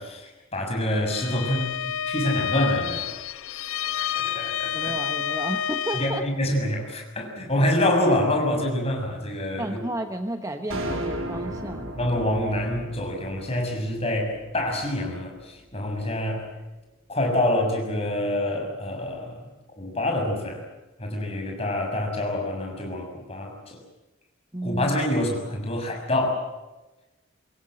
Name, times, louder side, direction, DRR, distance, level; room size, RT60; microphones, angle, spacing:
voice 1, 0.0-3.1 4.0-4.9 5.9-9.8 12.0-16.5 17.1-19.5 19.8-20.6 21.0-23.8 24.6-26.4, left 1 dB, 30° left, 2 dB, 6.7 m, -26 dB
Bowed string instrument, 1.0-6.3, left 8 dB, 80° left, 0.8 m, -29 dB
voice 2, 4.7-6.3 9.6-11.9 24.5-25.0, right 1 dB, 15° right, 6 dB, 1.1 m, -32 dB
sound 1, 10.7-15.1, right 1 dB, 90° right, 3.9 m, -35 dB
25.5 x 21.5 x 7.8 m, 1.0 s
head